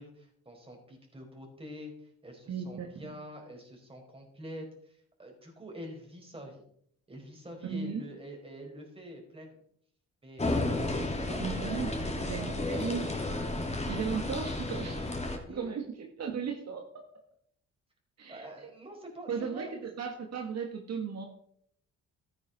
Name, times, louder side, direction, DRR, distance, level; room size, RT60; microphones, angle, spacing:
voice 1, 0.0-6.6 7.1-9.6 10.2-10.4 10.7-13.1 15.5-15.7 18.3-19.7, equal, 20° right, 1 dB, 4.8 m, -46 dB
voice 2, 2.5-3.1 7.6-8.1 11.4-13.0 13.9-15.1 15.5-17.0 18.2-18.7 19.3-21.3, right 6 dB, 60° right, 3 dB, 1.7 m, -36 dB
sound 1, 10.4-15.4, left 2 dB, 20° left, 2.9 m, -32 dB
13.5 x 10.0 x 4.1 m, 0.68 s
cardioid pair, 90°, 30 cm